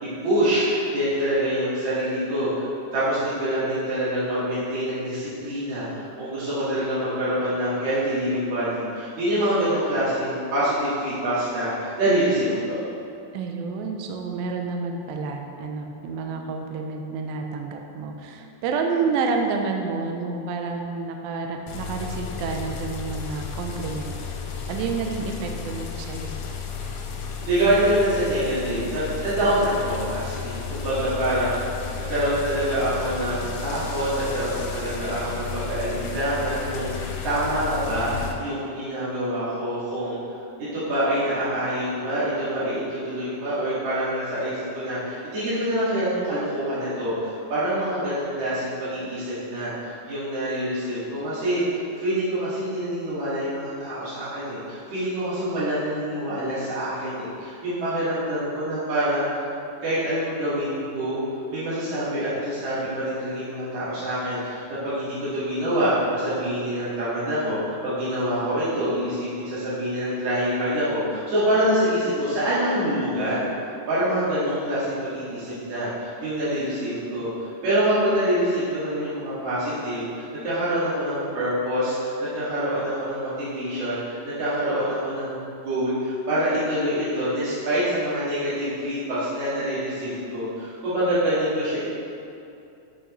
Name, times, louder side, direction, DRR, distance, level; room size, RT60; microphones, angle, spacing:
voice 1, 0.0-2.7 2.9-12.8 27.4-40.2 40.7-59.4 59.8-61.2 61.5-77.3 77.6-84.0 84.2-85.4 85.6-91.8, right 1 dB, 50° right, -13 dB, 2.8 m, -26 dB
voice 2, 13.3-24.2 24.7-26.4, right 4 dB, 80° right, 3 dB, 2.2 m, -29 dB
sound 1, 21.7-38.3, left 6 dB, 85° left, 3.0 m, -33 dB
10.0 x 6.4 x 3.1 m, 2.7 s
omnidirectional pair, 4.8 m